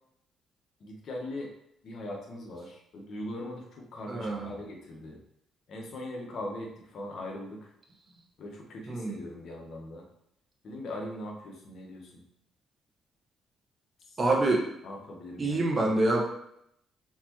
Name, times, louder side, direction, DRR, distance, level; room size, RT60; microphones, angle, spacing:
voice 1, 0.8-1.5 1.8-5.2 5.7-7.7 8.4-10.1 10.6-12.2 14.8-16.2, left 1 dB, 60° left, 0 dB, 1.2 m, -40 dB
voice 2, 4.1-4.5 8.9-9.2 14.2-14.7 15.4-16.2, right 2 dB, 35° right, 0 dB, 1.2 m, -26 dB
4.3 x 4.0 x 3.0 m, 0.75 s
cardioid pair, 90°, 0 cm